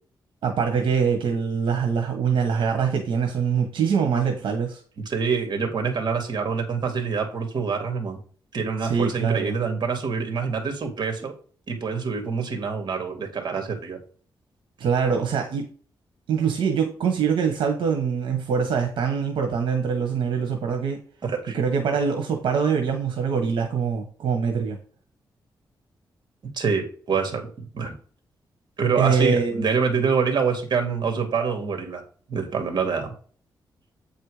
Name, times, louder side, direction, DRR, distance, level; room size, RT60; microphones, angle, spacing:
voice 1, 0.4-4.8 8.8-9.6 14.8-15.7 16.3-21.0 21.5-24.8 28.9-29.6, right 6 dB, 90° right, 1.3 m, -24 dB
voice 2, 5.1-8.2 8.5-11.3 11.7-14.0 21.2-21.6 26.5-27.5 27.7-27.9 28.8-32.0 32.3-33.1, right 5 dB, 60° right, 2.4 m, -26 dB
8.7 x 4.4 x 5.0 m
cardioid pair, 95°, 8 cm